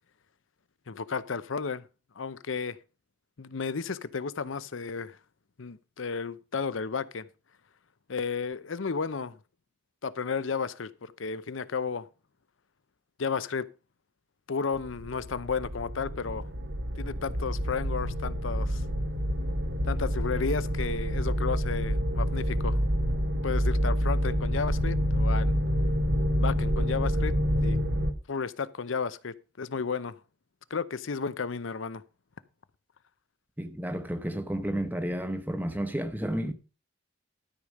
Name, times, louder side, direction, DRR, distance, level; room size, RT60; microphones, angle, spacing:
voice 1, 0.9-1.8 2.2-2.8 3.4-5.2 5.6-7.2 8.1-9.4 10.0-12.1 13.2-13.7 14.5-16.5 17.0-18.8 19.8-22.8 23.4-25.5 26.4-27.3 27.6-27.8 28.3-30.2 30.7-32.0, left 5 dB, 85° left, 0.7 m, -33 dB
sound 1, 14.7-28.1, equal, 65° right, 1.2 m, -28 dB
voice 2, 33.6-36.5, equal, 10° right, 1.0 m, -31 dB
13.0 x 5.1 x 6.4 m
head